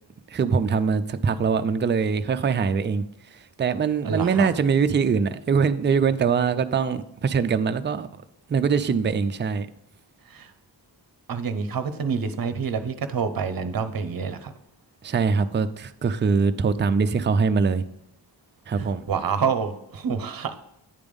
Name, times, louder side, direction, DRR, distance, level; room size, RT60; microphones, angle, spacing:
voice 1, 0.3-3.0 3.3-8.2 8.5-9.7 15.0-17.8 18.7-19.1, right 5 dB, 25° right, 11 dB, 0.4 m, -23 dB
voice 2, 4.0-4.5 10.3-10.5 11.3-14.5 18.8-20.6, right 6 dB, 50° right, 10 dB, 0.7 m, -27 dB
9.0 x 3.4 x 5.2 m, 0.80 s
cardioid pair, 60°, 44 cm